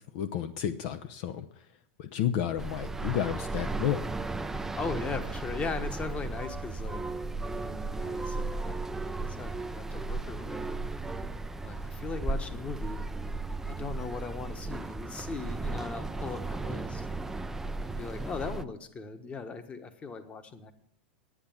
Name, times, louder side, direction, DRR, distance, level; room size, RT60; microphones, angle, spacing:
voice 1, 0.1-1.7 2.0-4.0, left 10 dB, 55° left, 10 dB, 0.7 m, -31 dB
sound 1, 2.6-18.6, right 3 dB, 5° right, 0.4 m, -35 dB
voice 2, 4.7-7.0 7.5-10.8 11.5-13.0 13.6-17.1 17.8-20.7, left 4 dB, 20° left, 9 dB, 1.3 m, -39 dB
10.0 x 8.8 x 7.3 m, 0.72 s
hypercardioid pair, 125°, 6 cm